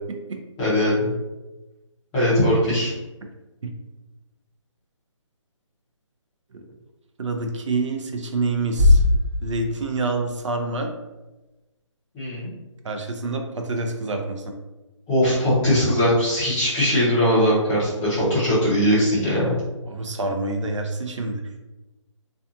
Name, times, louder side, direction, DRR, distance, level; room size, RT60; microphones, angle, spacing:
voice 1, 0.6-1.1 2.1-2.9 12.1-12.5 15.1-19.6, equal, 5° left, -12 dB, 0.5 m, -20 dB
voice 2, 7.2-9.0 9.4-10.9 12.8-14.5 19.9-21.4, right 3 dB, 70° right, 4 dB, 0.5 m, -27 dB
Bass drum, 8.8-10.5, left 2 dB, 25° right, 0.8 m, -20 dB
2.5 x 2.2 x 2.6 m, 1.1 s
hypercardioid pair, 170°, 16 cm